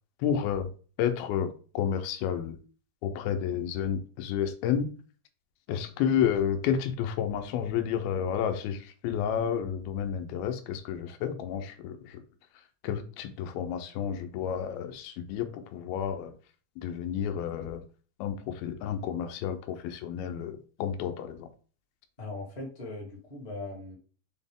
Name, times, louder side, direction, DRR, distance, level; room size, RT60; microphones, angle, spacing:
voice 1, 0.2-0.7 1.0-2.6 3.0-4.9 5.7-12.2 12.8-16.3 16.8-17.8 18.2-21.5, left 8 dB, 85° left, 7 dB, 2.6 m, -31 dB
voice 2, 22.2-23.9, left 2 dB, 20° left, -2 dB, 1.1 m, -39 dB
6.4 x 4.3 x 3.6 m, 0.39 s
omnidirectional pair, 4.3 m